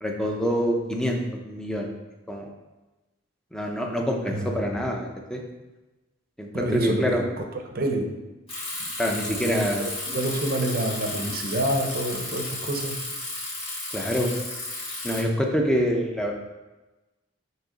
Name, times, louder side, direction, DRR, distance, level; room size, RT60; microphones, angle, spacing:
voice 1, 0.0-1.9 2.3-2.5 3.5-5.4 6.4-7.2 9.0-9.9 13.9-14.3 15.0-16.3, equal, 5° left, 1 dB, 0.6 m, -26 dB
voice 2, 6.5-7.2 7.7-8.1 8.8-8.9 9.4-13.0, right 1 dB, 50° right, 4 dB, 0.7 m, -28 dB
Bicycle, 8.5-15.2, left 2 dB, 30° left, 1.9 m, -33 dB
6.4 x 3.0 x 5.0 m, 1.1 s
head